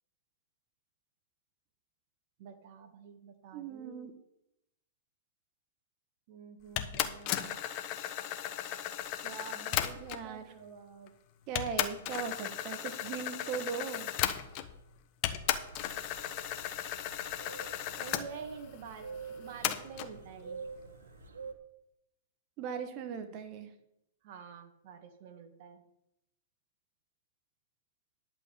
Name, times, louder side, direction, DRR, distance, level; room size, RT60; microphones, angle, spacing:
voice 1, 2.4-4.1 6.3-7.6 9.2-11.1 18.0-20.6 24.2-25.8, right 6 dB, 55° right, 6 dB, 2.1 m, -48 dB
voice 2, 3.5-4.1 10.0-10.5 11.5-14.1 22.6-23.7, right 7 dB, 40° right, 7 dB, 1.4 m, -39 dB
sound 1, 6.8-10.3 11.1-11.2 11.6-14.8 15.2-18.3 19.6-20.1, left 12 dB, 40° left, 1.1 m, -35 dB
sound 2, 15.4-21.5, right 4 dB, 90° right, 1.5 m, -47 dB
11.0 x 5.2 x 8.6 m, 0.84 s
hypercardioid pair, 130°, 0 cm